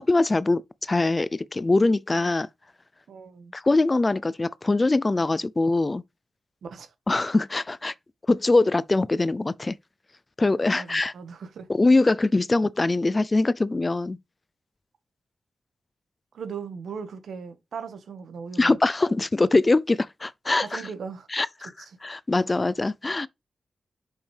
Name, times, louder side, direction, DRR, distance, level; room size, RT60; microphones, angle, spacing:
voice 1, 0.0-2.5 3.5-6.0 7.1-7.9 8.3-9.8 10.4-11.1 11.7-14.2 18.6-20.8 21.3-21.7 22.0-23.3, left 2 dB, 25° left, 0.4 m, -22 dB
voice 2, 3.1-3.5 6.6-6.9 10.7-11.7 16.3-18.8 20.6-21.3 21.8-21.9, right 6 dB, 85° right, 1.4 m, -38 dB
7.1 x 5.5 x 3.3 m
wide cardioid pair, 130°, 0 cm